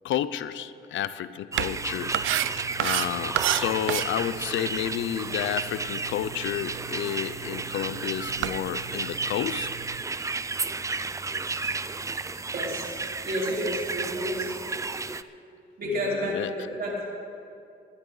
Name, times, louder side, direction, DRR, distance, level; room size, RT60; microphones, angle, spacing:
voice 1, 0.0-9.7 16.2-16.5, left 11 dB, 75° left, 15 dB, 0.6 m, -31 dB
sound 1, 1.5-15.2, right 4 dB, 15° right, 0.4 m, -33 dB
sound 2, 1.5-10.0, right 14 dB, 80° right, 0.5 m, -33 dB
voice 2, 12.5-12.9 13.2-14.5 15.8-17.1, equal, 50° right, -3 dB, 4.1 m, -30 dB
20.5 x 12.0 x 4.0 m, 2.5 s
cardioid pair, 90°, 20 cm